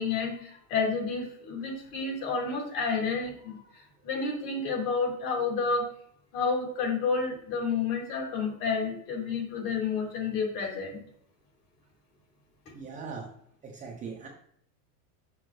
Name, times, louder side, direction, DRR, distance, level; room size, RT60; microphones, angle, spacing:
voice 1, 0.0-5.9 6.3-11.0, left 4 dB, 55° left, -1 dB, 3.0 m, -30 dB
voice 2, 12.7-13.3 13.6-14.3, right 5 dB, 15° right, -1 dB, 0.8 m, -40 dB
6.2 x 6.1 x 3.3 m, 0.69 s
supercardioid pair, 155°, 46 cm